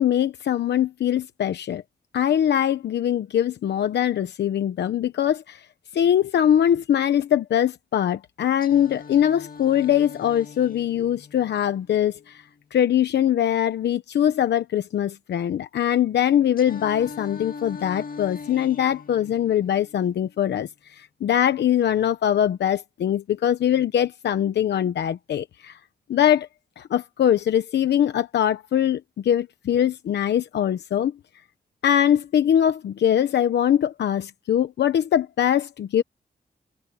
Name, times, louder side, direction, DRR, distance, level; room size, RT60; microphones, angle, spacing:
voice 1, 0.0-1.8 2.1-5.7 5.9-12.4 12.7-25.8 26.1-26.5 26.8-31.1 31.8-36.0, left 10 dB, 85° left, 0.9 m, -22 dB
Singing, 8.6-12.6 16.6-20.6, left 5 dB, 55° left, 2.3 m, -41 dB
cardioid pair, 60°, 17 cm